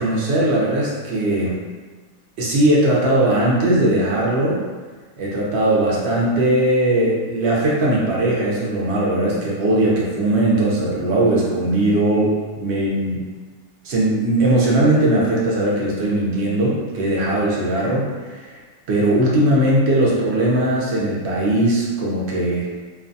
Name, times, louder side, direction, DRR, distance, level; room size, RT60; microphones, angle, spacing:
voice 1, 0.0-1.6 2.4-4.6 5.2-13.2 13.8-18.5 18.9-22.7, right 1 dB, 60° right, -4 dB, 0.7 m, -19 dB
2.6 x 2.2 x 2.5 m, 1.4 s
omnidirectional pair, 1.7 m